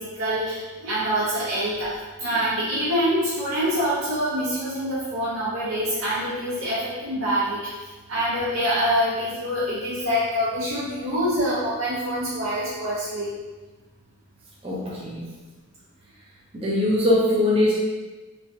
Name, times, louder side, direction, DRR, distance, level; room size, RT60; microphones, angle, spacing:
voice 1, 0.0-7.7 8.1-13.3, equal, 65° right, -11 dB, 0.9 m, -25 dB
voice 2, 14.6-15.3 16.5-17.8, left 1 dB, 25° right, -6 dB, 0.7 m, -21 dB
3.4 x 3.1 x 2.7 m, 1.2 s
head